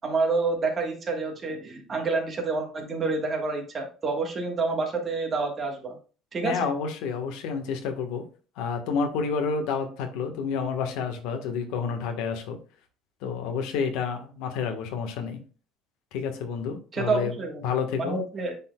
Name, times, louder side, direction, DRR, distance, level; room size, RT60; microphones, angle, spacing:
voice 1, 0.0-6.0 6.3-6.5 16.9-17.6 18.0-18.6, right 3 dB, 25° right, 2 dB, 1.5 m, -28 dB
voice 2, 6.4-8.2 8.6-12.6 13.2-15.4 16.1-17.3 17.6-18.2, left 5 dB, 75° left, 5 dB, 1.4 m, -29 dB
9.9 x 4.3 x 2.3 m, 0.37 s
cardioid pair, 155°, 0 cm